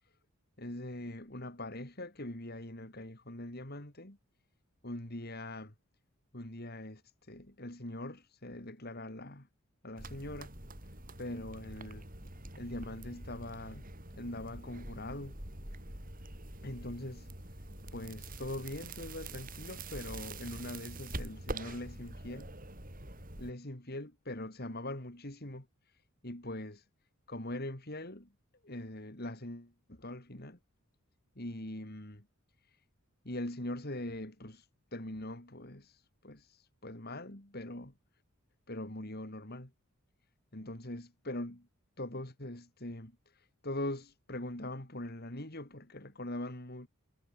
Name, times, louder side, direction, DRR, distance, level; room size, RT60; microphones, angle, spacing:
voice 1, 0.6-4.2 4.8-5.7 6.3-9.5 9.8-10.5 11.2-12.0 12.6-13.8 14.1-15.4 16.6-17.6 17.9-22.5 23.4-26.9 27.3-28.3 28.6-30.6 31.3-32.3 32.6-32.8 33.2-37.9 38.7-39.7 40.5-41.7 42.0-46.9, left 1 dB, 45° left, 3.2 m, -42 dB
sound 1, 10.0-23.5, right 2 dB, 40° right, 7.3 m, -45 dB
head